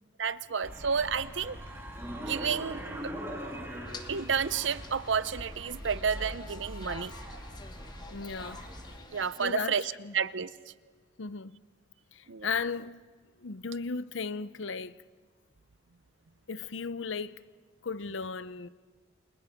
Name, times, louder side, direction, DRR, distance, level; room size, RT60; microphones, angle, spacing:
voice 1, 0.2-1.6 2.2-3.1 4.1-7.1 9.1-9.8 10.1-10.5 12.3-12.5, right 6 dB, 80° right, 0.7 m, -31 dB
sound 1, 0.6-9.0, equal, 15° right, 5.3 m, -41 dB
sound 2, 3.9-9.5, left 3 dB, 20° left, 1.2 m, -49 dB
voice 2, 8.1-8.6 9.4-10.2 11.2-11.6 12.1-13.0 13.4-15.0 16.5-17.4 17.8-18.7, left 5 dB, 90° left, 0.7 m, -36 dB
29.0 x 27.5 x 5.2 m
head